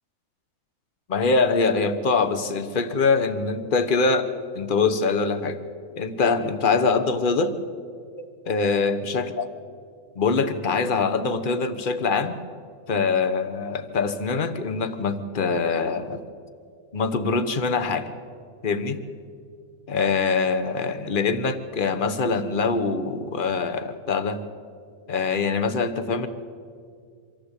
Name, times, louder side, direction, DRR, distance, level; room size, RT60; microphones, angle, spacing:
voice 1, 1.1-5.6 5.9-7.6 8.2-9.5 10.1-12.4 12.9-16.2 16.9-18.1 18.6-19.0 19.9-24.4 25.1-26.3, left 4 dB, 35° left, 11 dB, 1.1 m, -24 dB
24.5 x 14.5 x 8.3 m, 2.2 s
omnidirectional pair, 1.6 m